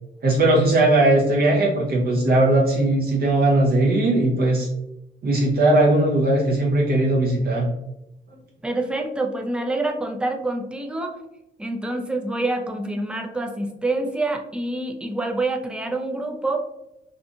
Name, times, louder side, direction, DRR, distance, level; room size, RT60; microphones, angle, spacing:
voice 1, 0.2-4.7 5.2-7.7, right 2 dB, 50° right, -3 dB, 0.6 m, -19 dB
voice 2, 8.6-11.2 11.6-16.6, right 2 dB, 5° right, 3 dB, 0.4 m, -26 dB
2.6 x 2.3 x 2.7 m, 0.88 s
cardioid pair, 90°, 20 cm